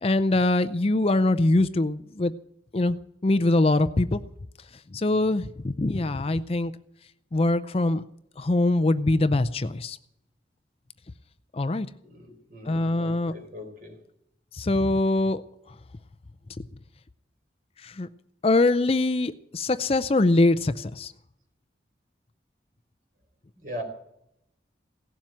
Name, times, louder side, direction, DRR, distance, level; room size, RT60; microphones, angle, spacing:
voice 1, 0.0-2.3 2.7-3.0 3.2-4.2 4.9-6.7 7.3-8.0 8.4-10.0 11.5-11.9 12.7-13.3 14.5-15.4 17.8-18.1 18.4-21.1, left 2 dB, 35° left, 13 dB, 0.5 m, -23 dB
voice 2, 12.0-14.0 23.6-23.8, equal, 50° right, 4 dB, 4.4 m, -40 dB
17.5 x 7.4 x 9.1 m, 0.78 s
head